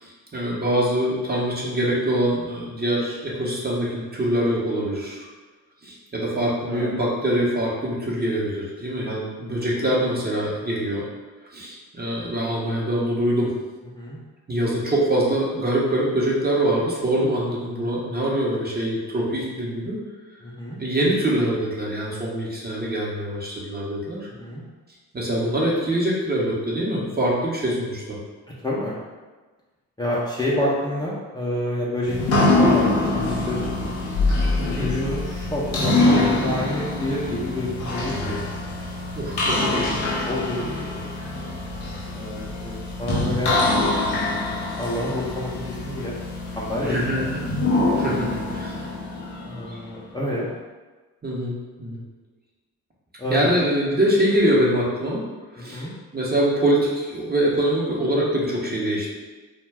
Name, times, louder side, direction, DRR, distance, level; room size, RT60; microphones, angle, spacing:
voice 1, 0.0-5.2 5.8-11.0 11.5-13.5 14.5-20.0 20.8-24.3 25.1-28.2 34.6-34.9 39.1-40.0 46.8-47.4 47.9-48.9 49.7-49.8 51.2-52.0 53.3-55.2 55.5-55.9 56.1-59.1, right 1 dB, 25° right, -4 dB, 0.8 m, -24 dB
voice 2, 9.6-9.9 13.9-14.2 20.4-20.8 24.4-24.6 28.6-29.0 30.0-34.0 34.7-38.5 40.3-41.1 42.1-43.6 44.8-46.2 46.5-47.4 49.4-50.5 53.2-53.5 55.6-55.9, left 1 dB, 10° left, -7 dB, 0.6 m, -28 dB
sound 1, 32.1-49.9, left 2 dB, 75° left, 0.7 m, -24 dB
2.2 x 2.1 x 3.4 m, 1.3 s
supercardioid pair, 55°, 39 cm